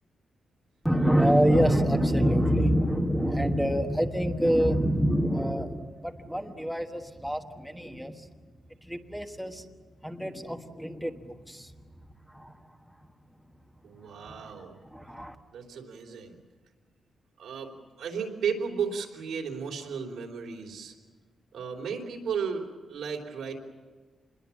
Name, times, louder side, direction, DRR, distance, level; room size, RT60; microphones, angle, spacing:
voice 1, 0.8-8.3 8.8-9.6 10.0-11.7 12.3-12.6 14.9-15.3, equal, ahead, 4 dB, 1.3 m, -26 dB
voice 2, 13.8-14.8 15.5-16.4 17.4-17.7 18.0-20.9 21.5-23.6, right 6 dB, 90° right, 2 dB, 4.0 m, -34 dB
27.0 x 21.5 x 7.4 m, 1.4 s
wide cardioid pair, 125°, 0 cm